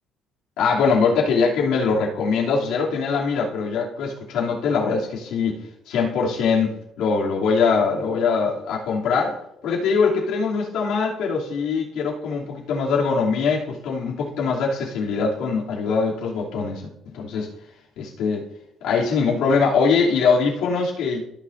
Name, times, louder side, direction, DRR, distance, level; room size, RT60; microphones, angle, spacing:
voice 1, 0.6-5.6 5.9-16.9 17.1-17.5 18.0-18.4 18.8-21.2, left 5 dB, 90° left, -4 dB, 2.9 m, -22 dB
15.5 x 6.9 x 2.7 m, 0.76 s
cardioid pair, 180°, 0 cm